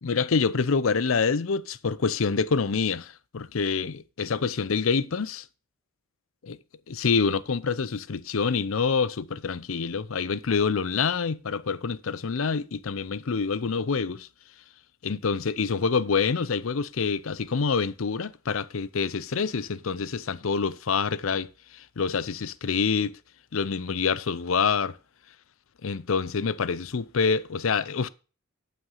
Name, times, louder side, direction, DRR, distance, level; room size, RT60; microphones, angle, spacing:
voice 1, 0.0-5.4 6.5-6.6 6.9-14.3 15.0-23.2 23.5-25.0 25.8-28.1, left 5 dB, 70° left, 0.6 m, -26 dB
11.5 x 6.0 x 5.5 m
head